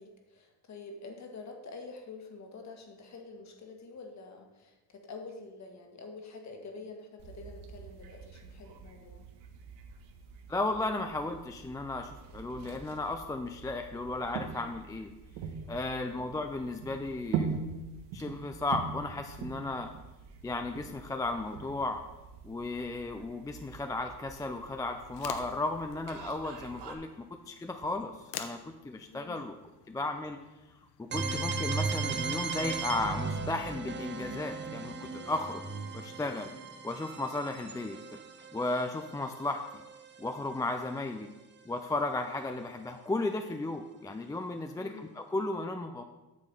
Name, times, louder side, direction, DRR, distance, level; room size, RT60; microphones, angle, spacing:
voice 1, 0.0-9.3 29.1-29.4 44.7-45.1, left 3 dB, 40° left, 4 dB, 1.6 m, -47 dB
sound 1, 7.2-26.9, right 6 dB, 75° right, 1.4 m, -43 dB
voice 2, 10.5-15.1 15.7-17.5 18.1-19.9 20.4-22.0 22.4-28.6 28.8-29.5 29.9-30.4 31.0-35.6 35.9-36.5 36.8-38.2 38.5-39.8 40.2-41.3 41.7-46.0, left 2 dB, 10° left, 6 dB, 0.4 m, -35 dB
sound 2, 25.0-31.4, left 9 dB, 75° left, 0.9 m, -48 dB
sound 3, 31.1-40.8, right 4 dB, 25° right, 0.8 m, -37 dB
8.2 x 6.7 x 5.4 m, 1.1 s
cardioid pair, 120°, 41 cm